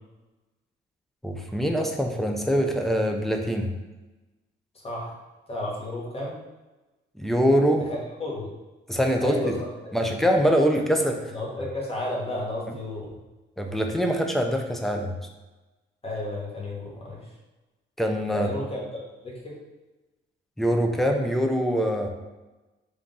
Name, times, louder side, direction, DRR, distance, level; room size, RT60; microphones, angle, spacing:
voice 1, 1.2-3.7 7.2-7.9 8.9-9.6 9.9-11.2 13.6-15.1 18.0-18.5 20.6-22.1, equal, ahead, 3 dB, 0.5 m, -23 dB
voice 2, 4.8-5.1 5.5-6.4 7.9-8.5 9.2-9.5 10.0-10.1 11.3-13.1 16.0-17.3 18.3-18.9 19.2-19.5, left 1 dB, 30° left, -3 dB, 1.3 m, -32 dB
3.6 x 2.7 x 3.7 m, 1.1 s
cardioid pair, 90°, 20 cm